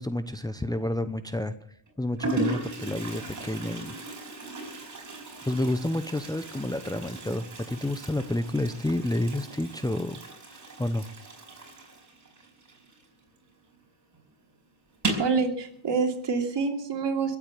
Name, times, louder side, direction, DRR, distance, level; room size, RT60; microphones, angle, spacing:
voice 1, 0.0-1.5 2.0-4.0 5.5-10.2 10.5-11.1, left 1 dB, 10° left, 9 dB, 0.8 m, -30 dB
Toilet flush, 0.7-1.1 1.9-2.0 2.2-13.5 13.7-13.8 14.1-14.2 14.9-15.4, right 2 dB, 35° right, 5.2 m, -36 dB
voice 2, 15.2-17.4, right 5 dB, 55° right, 4 dB, 2.9 m, -27 dB
21.5 x 8.5 x 7.3 m, 0.68 s
cardioid pair, 95°, 50 cm